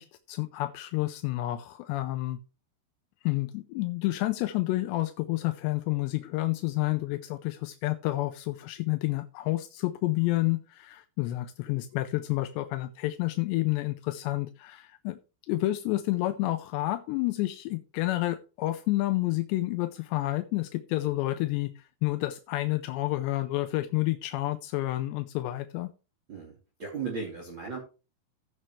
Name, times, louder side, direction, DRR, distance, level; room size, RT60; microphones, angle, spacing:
voice 1, 0.0-2.4 3.2-15.2 15.5-25.9, left 18 dB, 85° left, 2.8 m, -29 dB
voice 2, 26.3-27.8, right 5 dB, 35° right, 2.9 m, -36 dB
15.5 x 6.3 x 3.2 m
omnidirectional pair, 5.0 m